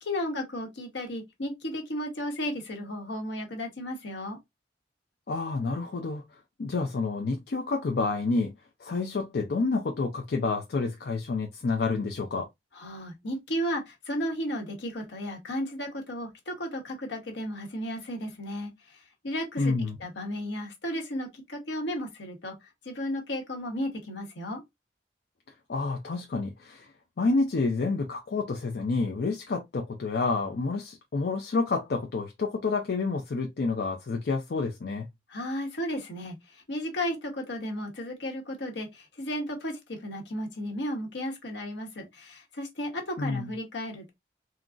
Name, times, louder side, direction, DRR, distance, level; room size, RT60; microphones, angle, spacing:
voice 1, 0.0-4.4 12.7-19.7 20.0-24.6 35.3-44.1, equal, 75° left, 1.0 m, -34 dB
voice 2, 5.3-8.5 8.8-12.5 19.6-20.0 25.7-35.1 43.2-43.5, left 3 dB, 60° left, 0.4 m, -29 dB
3.7 x 2.0 x 2.3 m
head